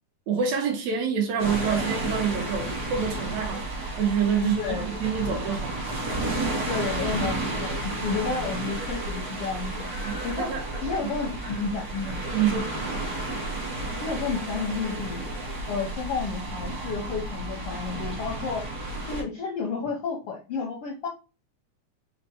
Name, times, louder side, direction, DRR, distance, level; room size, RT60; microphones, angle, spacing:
voice 1, 0.3-5.8 10.0-10.6 11.0-11.1 12.3-13.0, right 7 dB, 75° right, 1.8 m, -27 dB
sound 1, 1.4-19.2, right 2 dB, 55° right, 0.9 m, -32 dB
voice 2, 4.4-4.9 6.6-9.9 10.2-10.5 10.8-12.2 12.5-12.6 14.0-15.2 15.7-18.7 19.1-21.1, left 5 dB, 75° left, 1.3 m, -31 dB
5.0 x 2.2 x 4.1 m
omnidirectional pair, 3.4 m